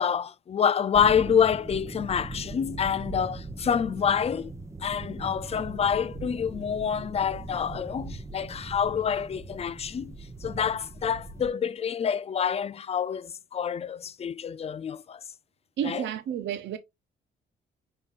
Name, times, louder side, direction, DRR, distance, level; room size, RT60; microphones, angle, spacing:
voice 1, 0.0-4.5 4.8-10.1 10.4-15.2 15.8-16.0, left 7 dB, 30° left, 0.3 m, -27 dB
sound 1, 0.9-11.5, right 3 dB, 15° right, 0.8 m, -40 dB
voice 2, 15.8-16.8, right 9 dB, 65° right, 0.6 m, -31 dB
5.5 x 3.4 x 2.4 m
cardioid pair, 90°, 20 cm